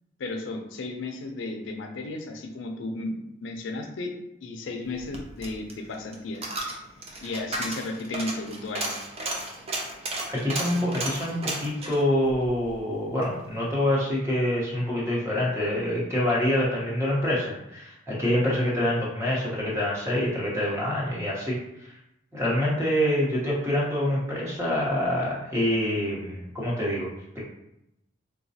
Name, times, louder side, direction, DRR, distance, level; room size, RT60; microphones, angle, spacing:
voice 1, 0.2-4.1 4.4-6.5 7.2-9.0, left 2 dB, 90° left, 4 dB, 0.5 m, -34 dB
Coin (dropping), 4.9-13.3 13.7-13.8, right 2 dB, 30° right, 0.5 m, -34 dB
voice 2, 10.3-21.6 22.3-27.4, left 1 dB, 15° right, -6 dB, 0.9 m, -26 dB
3.9 x 2.2 x 2.7 m, 0.84 s
head